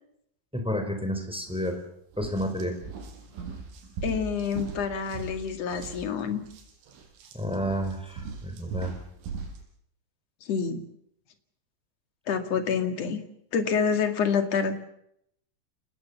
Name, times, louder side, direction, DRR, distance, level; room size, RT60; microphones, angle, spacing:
voice 1, 0.5-1.8 2.2-2.7 7.3-8.9, equal, ahead, 5 dB, 4.4 m, -30 dB
sound 1, 1.5-1.7 2.1-9.6, right 5 dB, 80° right, 6.3 m, -40 dB
voice 2, 4.0-6.4 10.5-10.8 12.3-13.2 13.5-14.7, left 6 dB, 50° left, 7 dB, 2.2 m, -27 dB
29.0 x 19.5 x 7.2 m, 0.74 s
omnidirectional pair, 5.6 m